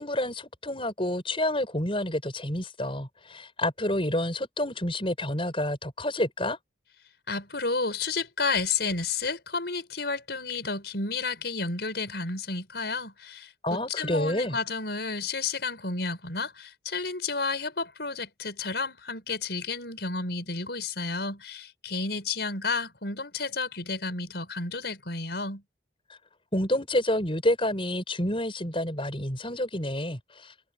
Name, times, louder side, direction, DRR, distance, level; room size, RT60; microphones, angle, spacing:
voice 1, 0.0-6.6 13.6-14.6 26.5-30.5, left 1 dB, 30° left, 7.4 m, -29 dB
voice 2, 7.3-25.6, left 4 dB, 60° left, 6.0 m, -31 dB
head